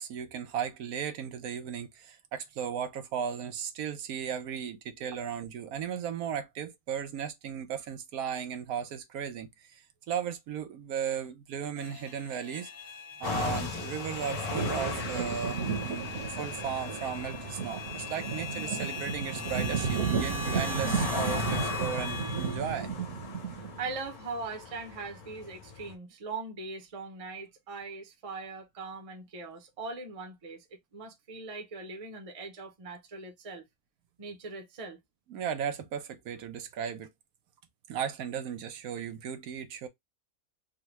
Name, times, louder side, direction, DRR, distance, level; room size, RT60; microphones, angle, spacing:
voice 1, 0.0-12.7 13.2-22.9 35.3-37.1 37.9-39.9, right 8 dB, 85° right, 1.1 m, -36 dB
sound 1, 11.8-22.6, left 3 dB, 40° left, 1.2 m, -41 dB
sound 2, 13.2-25.9, left 5 dB, 90° left, 1.3 m, -39 dB
sound 3, 13.5-23.9, right 6 dB, 60° right, 1.2 m, -34 dB
voice 2, 23.8-30.6 30.9-33.6 34.2-35.0, right 3 dB, 30° right, 0.7 m, -40 dB
3.6 x 2.2 x 2.9 m
omnidirectional pair, 1.5 m